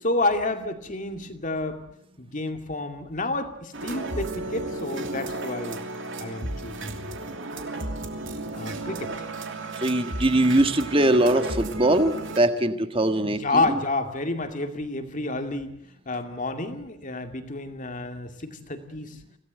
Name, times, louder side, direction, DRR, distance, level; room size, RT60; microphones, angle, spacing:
voice 1, 0.0-1.8 2.2-5.8 6.2-7.2 8.5-9.1 13.2-15.7 16.1-19.2, left 2 dB, 35° left, 6 dB, 2.4 m, -29 dB
sound 1, 3.7-12.4, right 2 dB, 55° right, 3.0 m, -34 dB
voice 2, 9.8-13.8, right 1 dB, 25° right, 8 dB, 1.6 m, -22 dB
26.0 x 17.5 x 8.2 m, 0.75 s
head